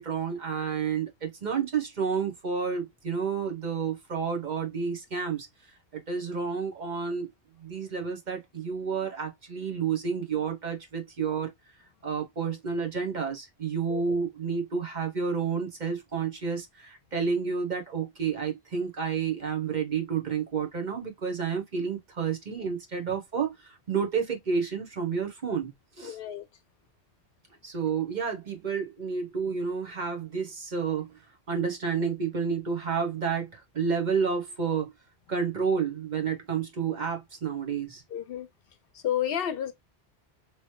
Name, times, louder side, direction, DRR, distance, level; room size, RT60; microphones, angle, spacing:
voice 1, 0.0-5.5 5.9-7.3 7.6-11.5 12.0-25.7 26.0-26.2 27.6-31.1 31.5-34.9 35.3-38.0, right 6 dB, 45° right, 0.9 m, -30 dB
voice 2, 26.0-26.5 38.1-38.5 38.9-39.7, left 10 dB, 65° left, 0.7 m, -31 dB
3.1 x 3.0 x 2.9 m
omnidirectional pair, 1.1 m